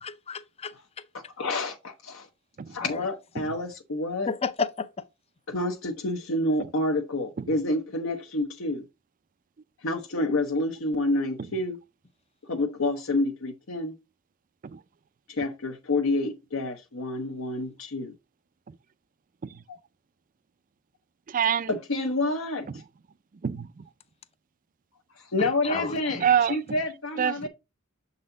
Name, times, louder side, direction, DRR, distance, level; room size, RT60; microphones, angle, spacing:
voice 1, 0.0-1.0 2.9-3.0 4.3-4.9 25.4-26.3, left 5 dB, 30° left, 0.5 m, -32 dB
voice 2, 1.1-2.3 2.7-4.3 5.5-8.8 9.8-11.8 12.4-13.9 15.3-18.1 19.7-19.8 21.7-22.8 25.2-27.5, left 2 dB, 65° left, 0.8 m, -28 dB
voice 3, 21.3-21.7 23.4-23.8 26.2-26.6 27.2-27.5, right 8 dB, 40° right, 0.4 m, -25 dB
6.9 x 4.1 x 3.8 m
head